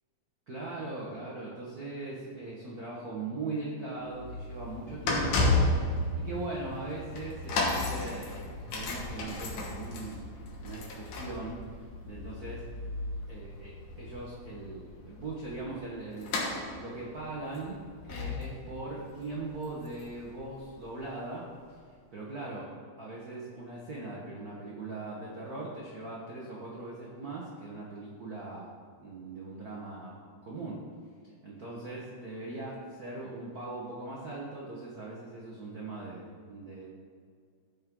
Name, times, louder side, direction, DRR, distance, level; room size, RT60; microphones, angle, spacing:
voice 1, 0.5-5.7 5.9-12.6 13.3-16.3 16.8-17.8 18.0-21.5 22.1-28.7 29.0-30.2 30.4-30.8 31.4-36.9, right 2 dB, 55° right, -5 dB, 1.0 m, -40 dB
sound 1, 4.0-21.0 21.6-21.7, left 2 dB, 85° left, 2.7 m, -34 dB
14.0 x 5.4 x 3.7 m, 2.1 s
omnidirectional pair, 3.4 m